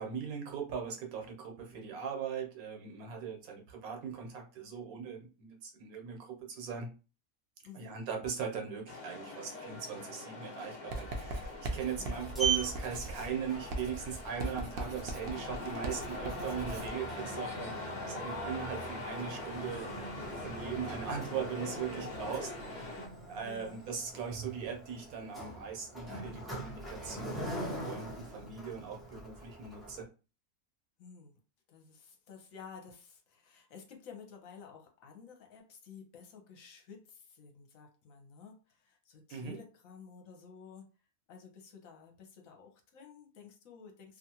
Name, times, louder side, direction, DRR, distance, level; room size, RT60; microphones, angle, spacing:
voice 1, 0.0-6.9 7.7-19.9 20.4-30.1 39.3-39.6, right 7 dB, 85° right, 1.3 m, -39 dB
voice 2, 7.6-8.0 12.0-12.3 23.4-23.8 31.0-31.3 31.7-40.9 41.3-44.2, left 6 dB, 75° left, 1.1 m, -52 dB
sound 1, 8.9-23.1, left 2 dB, 45° left, 0.6 m, -43 dB
Writing, 10.9-17.0, right 2 dB, 65° right, 0.6 m, -40 dB
Sliding door, 11.8-30.0, right 3 dB, ahead, 0.7 m, -42 dB
2.8 x 2.4 x 2.8 m
omnidirectional pair, 1.5 m